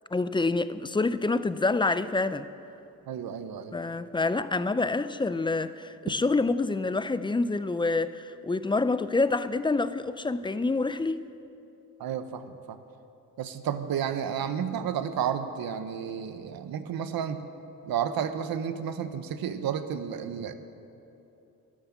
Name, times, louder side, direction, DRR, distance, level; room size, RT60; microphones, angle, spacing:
voice 1, 0.1-2.5 3.7-11.2, left 3 dB, 15° left, 14 dB, 0.4 m, -27 dB
voice 2, 3.1-3.7 12.0-12.8 13.4-17.4 17.8-20.5, right 8 dB, 75° right, 10 dB, 1.0 m, -31 dB
12.5 x 11.5 x 7.4 m, 2.8 s
cardioid pair, 95°, 36 cm